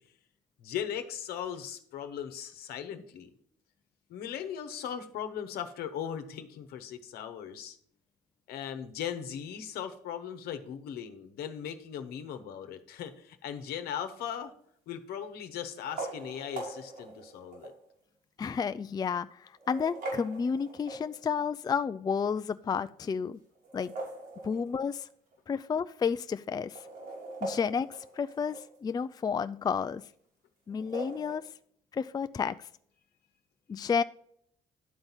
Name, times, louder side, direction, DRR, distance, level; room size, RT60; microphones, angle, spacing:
voice 1, 0.6-3.3 4.1-7.8 8.5-14.5 14.9-17.7, left 9 dB, 75° left, 8 dB, 1.0 m, -38 dB
sound 1, 14.1-14.5 15.7-17.8 18.5-18.6 19.4-21.4 23.6-25.0 25.3-25.4 25.6-25.7 26.6-28.8 30.7-31.4, right 2 dB, 80° right, 3.4 m, -41 dB
voice 2, 18.4-23.4 23.7-23.9 24.4-25.1 25.5-26.8 27.4-30.0 30.7-31.4 31.9-32.7 33.7-34.0, left 6 dB, 25° left, 12 dB, 0.4 m, -31 dB
11.0 x 4.0 x 6.0 m, 0.65 s
supercardioid pair, 65°, 16 cm